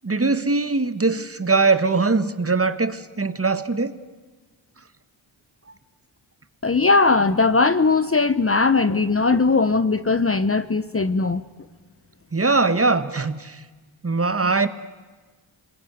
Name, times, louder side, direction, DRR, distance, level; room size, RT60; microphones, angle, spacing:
voice 1, 0.0-3.9 12.3-13.6 14.0-14.7, right 3 dB, 30° right, 1.5 m, -21 dB
voice 2, 6.6-11.4, left 4 dB, 25° left, 0.9 m, -19 dB
27.0 x 21.5 x 9.5 m
cardioid pair, 50°, 49 cm